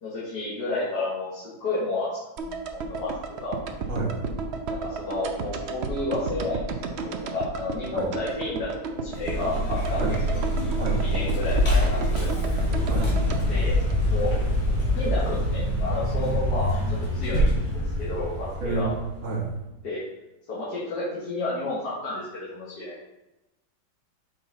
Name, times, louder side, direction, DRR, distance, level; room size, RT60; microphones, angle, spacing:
voice 1, 0.0-2.1 2.4-3.1 3.4-3.5 4.7-10.0 10.3-10.4 10.8-12.3 13.5-13.8 14.1-14.3 15.0-17.5 18.0-18.9 19.8-20.0 20.5-23.0, left 2 dB, 65° left, -8 dB, 2.1 m, -31 dB
sound 1, 2.4-14.6 14.8-14.9, right 4 dB, 85° right, 0.5 m, -33 dB
voice 2, 3.9-4.2 7.9-8.1 10.0-10.1 10.8-11.0 12.9-13.1 18.6-19.5, right 4 dB, 45° right, -3 dB, 1.6 m, -29 dB
Vehicle, 9.1-19.4, equal, 85° left, 2.3 m, -25 dB
5.5 x 5.5 x 3.9 m, 0.94 s
omnidirectional pair, 1.9 m